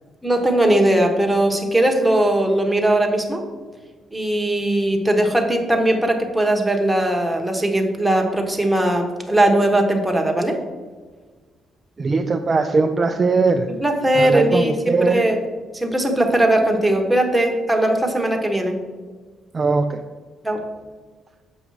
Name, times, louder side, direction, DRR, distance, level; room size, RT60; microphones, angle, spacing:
voice 1, 0.2-3.4 4.1-10.6 13.8-15.4 15.7-18.7 20.4-20.7, right 1 dB, 5° right, 2 dB, 1.1 m, -19 dB
voice 2, 12.0-13.7 14.1-15.2 19.5-20.0, right 4 dB, 30° right, 5 dB, 0.4 m, -20 dB
7.0 x 5.2 x 4.7 m, 1.4 s
cardioid pair, 115°, 0 cm